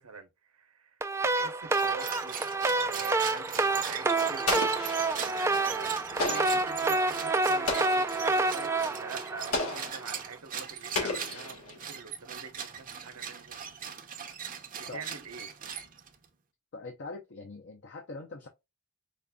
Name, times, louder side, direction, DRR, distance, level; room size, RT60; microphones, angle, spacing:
voice 1, 0.0-4.8 5.1-13.7 14.7-15.5, right 5 dB, 80° right, 0.9 m, -45 dB
sound 1, 1.0-10.1, right 3 dB, 15° right, 0.3 m, -28 dB
sound 2, 1.6-16.3, right 8 dB, 40° right, 0.7 m, -40 dB
Explosion, 4.5-5.4 6.2-6.7 7.7-8.2 9.5-10.1 10.9-11.8, left 2 dB, 80° left, 1.5 m, -33 dB
voice 2, 16.7-18.5, left 3 dB, 55° left, 0.6 m, -42 dB
5.1 x 2.5 x 2.2 m
head